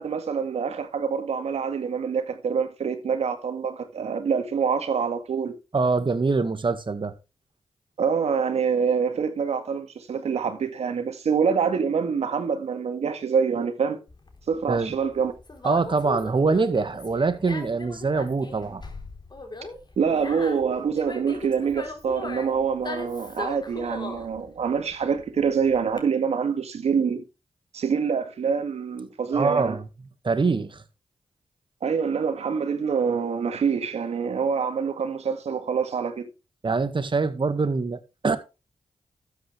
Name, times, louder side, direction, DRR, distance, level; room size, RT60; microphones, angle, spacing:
voice 1, 0.0-5.5 8.0-14.0 14.5-15.3 20.0-27.2 27.7-29.8 31.8-36.3, right 6 dB, 75° right, 2.0 m, -26 dB
voice 2, 5.7-7.1 14.7-14.9 15.6-18.8 29.3-29.8 30.2-30.8 36.6-38.4, right 4 dB, 50° right, 1.9 m, -24 dB
Conversation, 14.1-26.0, left 3 dB, 40° left, 4.0 m, -38 dB
12.5 x 8.7 x 3.5 m
supercardioid pair, 45°, 11 cm